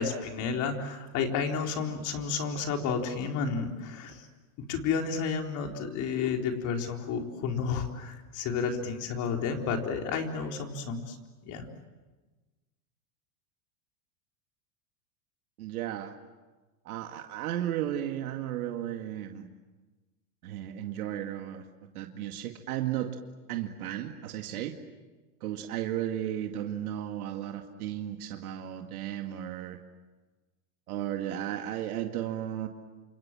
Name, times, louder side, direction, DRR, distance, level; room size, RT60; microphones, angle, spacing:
voice 1, 0.0-4.3 4.6-11.2 11.4-11.7, left 5 dB, 40° left, 3 dB, 4.3 m, -31 dB
voice 2, 15.6-16.1 16.9-19.5 20.4-21.6 21.9-23.2 23.5-24.8 25.4-29.8 30.9-32.7, right 11 dB, 75° right, 4 dB, 2.2 m, -34 dB
28.5 x 26.5 x 7.6 m, 1.2 s
supercardioid pair, 130°, 44 cm